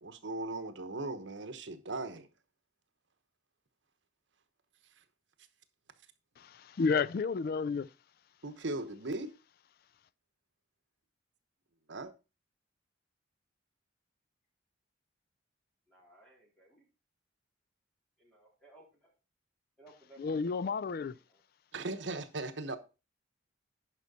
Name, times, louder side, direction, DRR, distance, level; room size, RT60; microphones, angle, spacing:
voice 1, 0.0-2.3 8.4-9.3 11.9-12.1 21.7-22.8, right 2 dB, 70° right, 1.1 m, -38 dB
voice 2, 6.4-7.9 20.2-21.1, left 5 dB, 55° left, 0.3 m, -31 dB
voice 3, 15.9-16.8 18.2-19.1 19.8-20.7 21.1-21.4, right 1 dB, 5° left, 4.1 m, -60 dB
10.5 x 5.7 x 4.2 m
head